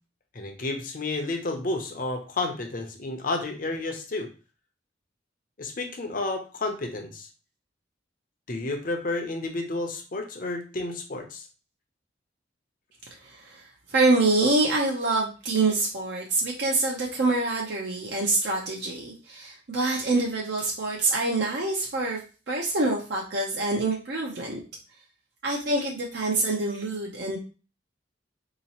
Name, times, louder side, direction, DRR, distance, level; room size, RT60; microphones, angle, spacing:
voice 1, 0.3-4.3 5.6-7.3 8.5-11.5, left 2 dB, 50° left, 4 dB, 0.7 m, -31 dB
voice 2, 13.2-22.2 22.5-24.6 25.4-27.4, right 2 dB, 60° right, -2 dB, 0.7 m, -26 dB
4.0 x 2.9 x 2.9 m, 0.35 s
head